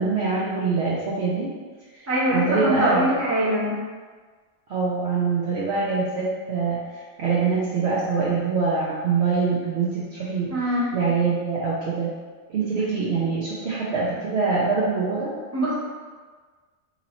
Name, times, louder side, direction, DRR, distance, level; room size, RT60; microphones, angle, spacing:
voice 1, 0.0-1.5 2.3-3.1 4.7-6.8 7.2-12.1 12.5-15.3, right 4 dB, 60° right, -6 dB, 0.8 m, -24 dB
voice 2, 2.1-3.7 10.5-10.9 15.5-15.8, equal, 15° right, -8 dB, 0.8 m, -23 dB
3.0 x 2.7 x 4.2 m, 1.5 s
omnidirectional pair, 1.4 m